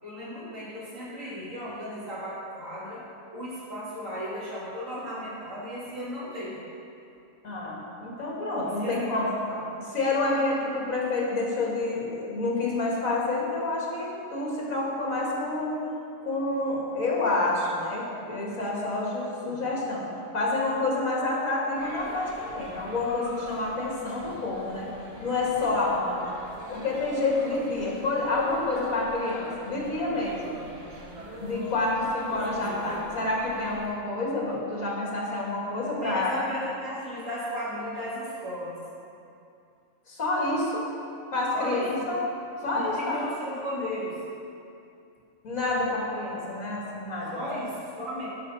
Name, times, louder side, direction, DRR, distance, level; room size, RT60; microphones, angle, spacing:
voice 1, 0.0-3.0 3.3-6.7 8.6-9.6 19.3-19.6 32.5-32.8 36.0-38.8 41.5-41.9 42.7-44.2 47.3-48.3, equal, 70° right, -8 dB, 2.9 m, -35 dB
voice 2, 7.4-9.3 9.9-15.9 16.2-20.0 20.3-24.9 25.2-26.4 26.7-30.6 31.4-36.4 40.1-40.8 41.3-42.2 42.6-43.2 45.4-47.4, left 2 dB, 70° left, -4 dB, 2.2 m, -28 dB
sound 1, 21.7-33.9, right 1 dB, 30° right, 1.3 m, -43 dB
11.5 x 4.8 x 5.6 m, 2.6 s
omnidirectional pair, 1.5 m